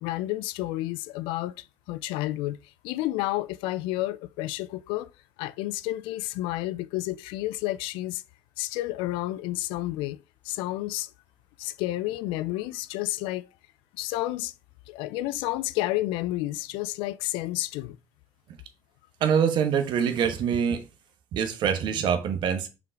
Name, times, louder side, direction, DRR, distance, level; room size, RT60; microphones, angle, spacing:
voice 1, 0.0-1.5 1.9-2.6 2.8-5.1 5.4-8.2 8.6-10.2 10.5-11.1 11.6-13.5 14.0-14.5 14.9-18.0, left 16 dB, 75° left, 0.5 m, -30 dB
voice 2, 19.2-20.8 21.3-22.7, right 7 dB, 60° right, 1.2 m, -24 dB
5.7 x 3.8 x 4.5 m
hypercardioid pair, 70°, 9 cm